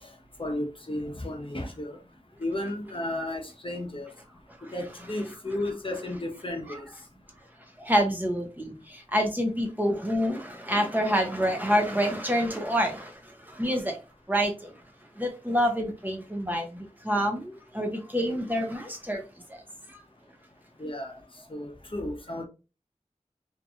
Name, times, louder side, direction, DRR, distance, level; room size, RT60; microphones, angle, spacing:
voice 1, 0.4-2.0 2.4-4.1 4.7-6.9 20.8-21.1 21.5-22.4, left 1 dB, 45° left, 0.8 m, -33 dB
voice 2, 7.8-14.0 14.3-14.8 15.2-19.2 19.5-19.6 19.9-20.0, equal, 15° right, 0.8 m, -27 dB
3.0 x 2.5 x 2.5 m
wide cardioid pair, 40°, 13 cm